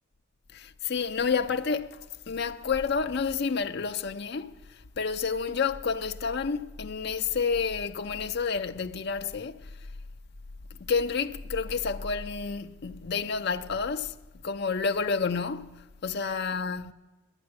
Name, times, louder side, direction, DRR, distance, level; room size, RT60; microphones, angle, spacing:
voice 1, 0.5-2.0 2.3-4.6 5.0-9.6 10.9-14.1 14.4-16.9, left 5 dB, 50° left, 0.5 m, -29 dB
10.5 x 9.7 x 9.7 m
head